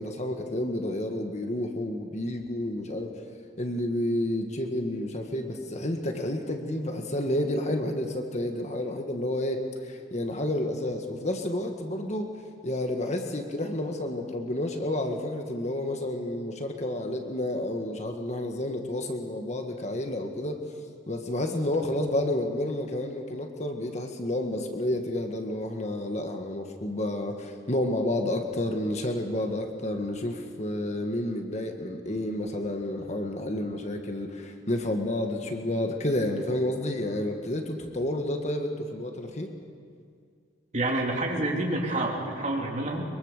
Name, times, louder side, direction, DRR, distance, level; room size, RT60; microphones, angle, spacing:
voice 1, 0.0-3.1 3.6-12.3 12.6-20.6 21.1-39.5, left 1 dB, 35° left, 4 dB, 1.7 m, -30 dB
voice 2, 40.7-43.0, right 2 dB, 40° right, 0 dB, 3.3 m, -28 dB
23.0 x 23.0 x 6.8 m, 2.2 s
head